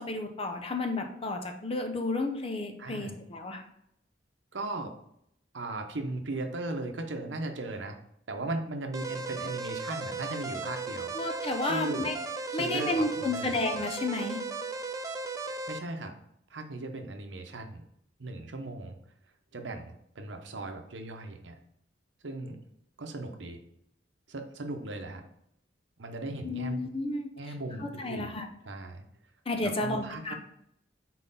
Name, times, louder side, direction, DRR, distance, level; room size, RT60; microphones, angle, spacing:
voice 1, 0.0-3.6 11.1-12.1 12.5-14.4 26.4-27.3 27.8-28.5 29.5-30.3, left 2 dB, 30° left, 4 dB, 0.7 m, -32 dB
voice 2, 2.8-3.2 4.5-4.9 5.5-8.0 8.3-11.1 11.6-12.1 12.5-13.5 15.7-16.1 16.5-17.8 18.2-19.0 19.5-21.6 22.2-22.6 23.0-23.6 24.3-25.2 26.0-26.8 27.4-28.4 28.6-29.0 29.6-30.3, right 2 dB, 75° right, 5 dB, 0.8 m, -37 dB
sound 1, 8.9-15.8, right 3 dB, 20° right, 0.5 m, -36 dB
4.4 x 4.1 x 5.5 m, 0.74 s
head